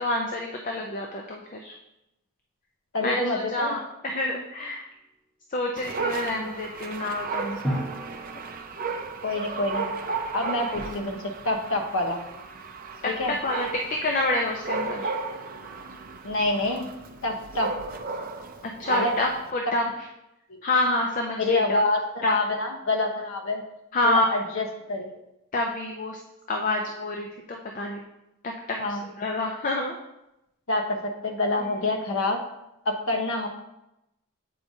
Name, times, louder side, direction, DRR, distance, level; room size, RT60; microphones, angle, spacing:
voice 1, 0.0-1.7 3.0-4.8 5.5-7.6 10.6-11.2 13.0-13.7 14.0-15.1 18.8-19.8 20.6-21.8 22.2-22.3 23.9-24.3 25.5-26.2 26.5-28.0 28.4-30.0, left 2 dB, 35° left, 1 dB, 0.5 m, -28 dB
voice 2, 2.9-3.8 9.2-9.9 10.3-12.2 13.0-13.3 16.2-16.9 17.2-17.7 18.9-19.1 20.5-20.6 21.4-23.6 24.0-25.2 28.8-29.1 30.7-32.4 32.8-33.5, left 2 dB, 65° left, 2 dB, 0.9 m, -27 dB
Dog, 5.8-19.5, right 4 dB, 40° right, 0.5 m, -34 dB
Drum, 7.6-9.4, equal, 5° left, 1.4 m, -33 dB
7.7 x 4.8 x 2.7 m, 0.88 s
head